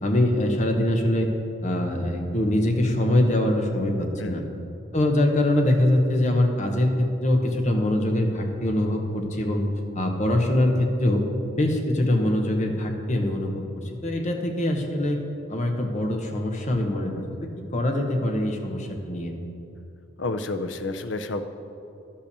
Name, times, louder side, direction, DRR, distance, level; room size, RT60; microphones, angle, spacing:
voice 1, 0.0-1.3 1.6-4.4 4.9-9.6 9.9-11.2 11.6-15.2 15.5-17.2 17.7-19.3, left 1 dB, 35° left, 3 dB, 1.1 m, -23 dB
voice 2, 4.2-4.7 20.2-21.4, left 2 dB, 65° left, 8 dB, 0.6 m, -30 dB
12.0 x 5.6 x 6.8 m, 2.8 s
head